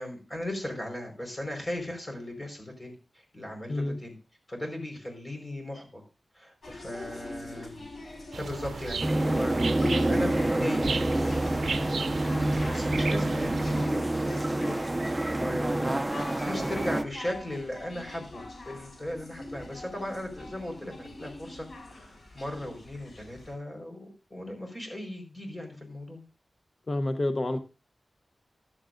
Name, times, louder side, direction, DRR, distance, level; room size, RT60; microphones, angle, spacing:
voice 1, 0.0-4.2 4.5-6.0 6.3-7.8 8.4-9.6 10.1-16.0 16.4-21.7 21.9-26.2, left 1 dB, 25° left, 3 dB, 4.6 m, -37 dB
voice 2, 3.7-4.0 26.9-27.6, left 1 dB, 45° left, 8 dB, 0.9 m, -28 dB
sound 1, 6.6-23.5, left 2 dB, 70° left, 4.6 m, -43 dB
sound 2, 8.3-13.8, right 5 dB, 90° right, 0.4 m, -36 dB
sound 3, 9.0-17.0, right 1 dB, 20° right, 0.5 m, -27 dB
15.0 x 11.0 x 2.6 m, 0.31 s
wide cardioid pair, 85°, 0 cm